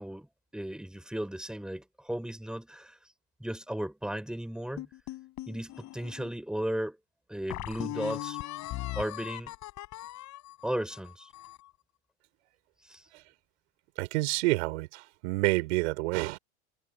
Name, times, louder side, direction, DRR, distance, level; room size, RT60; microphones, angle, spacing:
voice 1, 0.0-3.0 3.4-4.9 5.5-7.0 7.3-8.4 9.0-9.5 10.6-11.3 12.9-13.0, right 1 dB, ahead, 5.2 m, -35 dB
sound 1, 4.8-6.3 6.9-7.0 7.5-11.7, left 17 dB, 55° left, 6.8 m, -39 dB
voice 2, 14.0-16.4, right 23 dB, 75° right, 4.8 m, -28 dB
supercardioid pair, 100°, 35 cm